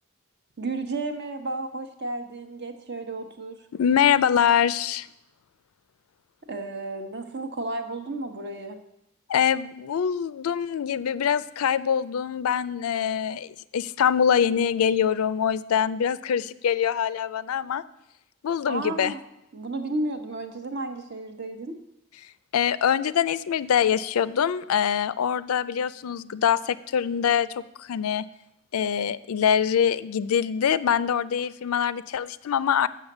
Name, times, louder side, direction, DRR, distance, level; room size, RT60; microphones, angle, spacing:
voice 1, 0.6-3.6 6.5-8.8 18.7-19.2 19.5-21.8, right 2 dB, 50° right, 7 dB, 1.0 m, -32 dB
voice 2, 3.7-5.1 9.3-17.8 18.4-19.1 22.5-27.5 27.8-28.2 28.7-32.9, left 8 dB, 85° left, 16 dB, 0.4 m, -24 dB
7.2 x 6.4 x 7.8 m, 0.85 s
head